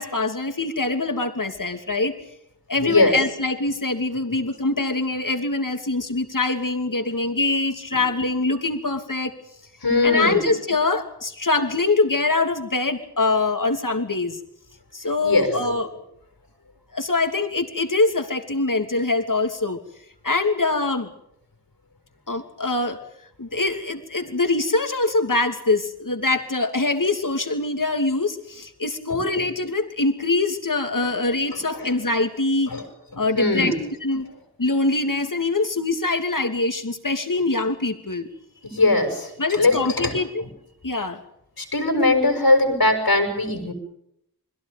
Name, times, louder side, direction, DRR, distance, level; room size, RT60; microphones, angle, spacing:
voice 1, 0.0-2.1 2.7-9.3 10.0-14.4 14.9-15.9 16.9-19.8 20.2-21.1 22.3-23.0 23.4-32.7 33.2-33.7 34.0-34.2 34.6-38.3 39.4-40.4 40.8-41.2, left 3 dB, 55° left, 7 dB, 2.9 m, -23 dB
voice 2, 2.8-3.2 7.9-8.0 9.8-10.5 15.2-15.8 29.1-29.2 31.7-31.9 32.7-32.8 33.3-33.8 38.6-40.2 41.6-43.7, left 2 dB, 70° left, 4 dB, 6.8 m, -20 dB
30.0 x 22.0 x 5.3 m, 0.77 s
wide cardioid pair, 45°, 38 cm